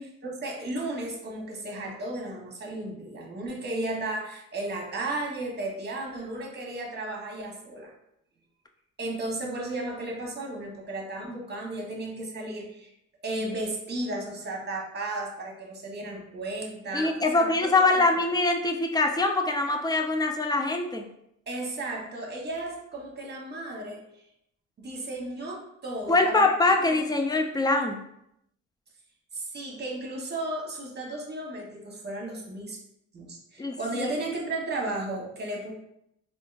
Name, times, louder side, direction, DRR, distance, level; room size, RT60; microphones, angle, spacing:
voice 1, 0.0-7.9 9.0-12.9 13.2-18.0 21.5-24.0 24.8-26.4 26.8-27.0 29.3-32.8 33.1-35.7, right 2 dB, 35° right, -1 dB, 1.0 m, -34 dB
voice 2, 16.9-21.0 26.1-28.0 33.6-33.8 34.0-34.1, left 2 dB, 15° left, 4 dB, 0.3 m, -23 dB
3.6 x 2.5 x 2.4 m, 0.79 s
cardioid pair, 90°, 30 cm